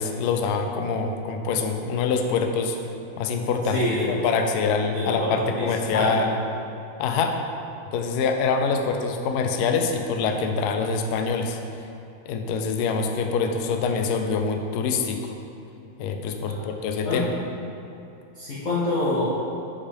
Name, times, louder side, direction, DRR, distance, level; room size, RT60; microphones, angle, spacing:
voice 1, 0.0-2.8 3.2-3.8 4.1-6.4 7.0-7.4 7.9-11.6 12.3-15.3 16.0-17.3, left 5 dB, 90° left, 4 dB, 0.8 m, -25 dB
voice 2, 3.7-4.3 4.9-6.2 16.5-16.7 17.0-17.3 18.3-19.3, left 2 dB, 55° left, -8 dB, 1.1 m, -26 dB
7.4 x 4.9 x 3.4 m, 2.8 s
omnidirectional pair, 2.3 m